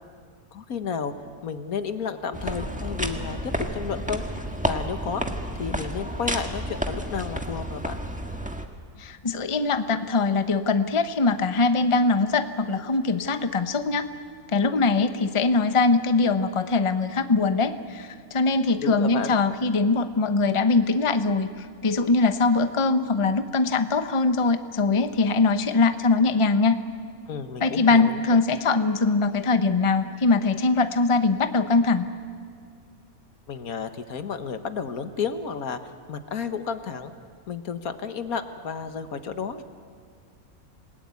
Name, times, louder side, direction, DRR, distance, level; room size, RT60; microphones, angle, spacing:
voice 1, 0.5-1.1 1.4-4.2 4.6-5.2 5.6-8.0 18.8-19.4 27.3-28.4 33.5-37.1 37.5-39.6, left 6 dB, 80° left, 9 dB, 1.7 m, -32 dB
sound 1, 2.3-8.7, equal, 5° right, 1.5 m, -31 dB
voice 2, 9.0-14.1 14.5-26.8 27.6-32.1, left 3 dB, 25° left, 10 dB, 0.9 m, -22 dB
27.0 x 19.5 x 9.6 m, 2.2 s
omnidirectional pair, 1.5 m